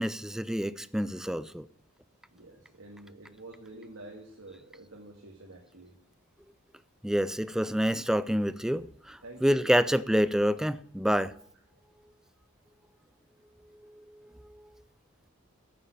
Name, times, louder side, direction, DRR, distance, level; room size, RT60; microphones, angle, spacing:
voice 1, 0.0-1.7 7.0-11.3 13.8-14.6, equal, 5° right, 0.4 m, -28 dB
voice 2, 2.3-6.0 9.2-9.8 11.2-11.3, right 2 dB, 80° right, 2.0 m, -48 dB
9.2 x 6.9 x 8.8 m
head